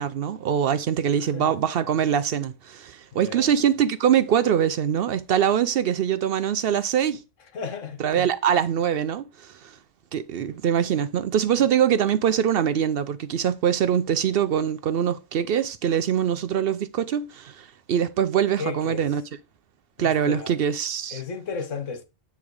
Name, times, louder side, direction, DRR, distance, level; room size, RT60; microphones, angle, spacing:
voice 1, 0.0-7.2 8.0-9.7 10.1-19.2 20.0-21.2, right 9 dB, 60° right, 0.7 m, -23 dB
voice 2, 1.2-1.5 3.1-3.5 7.5-8.3 10.4-10.6 18.6-19.0 20.0-20.5 21.1-22.0, left 5 dB, 80° left, 1.5 m, -34 dB
9.0 x 3.5 x 4.6 m
omnidirectional pair, 1.3 m